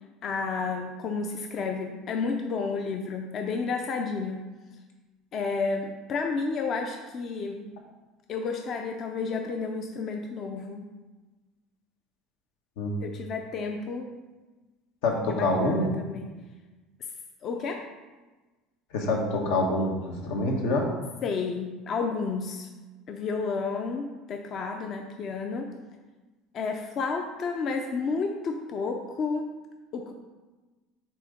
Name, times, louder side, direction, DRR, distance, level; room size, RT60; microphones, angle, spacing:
voice 1, 0.2-4.5 5.3-7.6 8.3-10.9 13.0-14.1 15.3-16.3 17.4-17.8 21.2-22.7 23.1-25.7 26.5-29.5 29.9-30.1, left 4 dB, 40° left, 4 dB, 0.5 m, -31 dB
voice 2, 15.0-15.9 18.9-20.9, left 2 dB, 85° left, 1 dB, 1.2 m, -26 dB
7.6 x 2.8 x 5.0 m, 1.2 s
cardioid pair, 140°, 0 cm